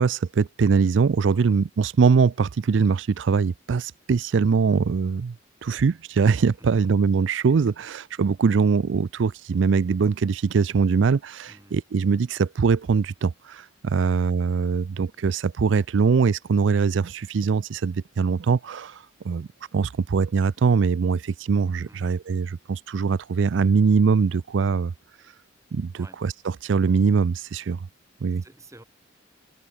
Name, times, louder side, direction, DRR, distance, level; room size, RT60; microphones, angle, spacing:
voice 1, 0.0-5.4 5.6-24.9 25.7-27.9 28.2-28.4, right 5 dB, 75° right, 0.4 m, -22 dB
voice 2, 11.5-11.8 14.0-14.1 21.9-22.1 26.0-26.2 28.4-28.8, right 2 dB, 15° right, 5.9 m, -50 dB
head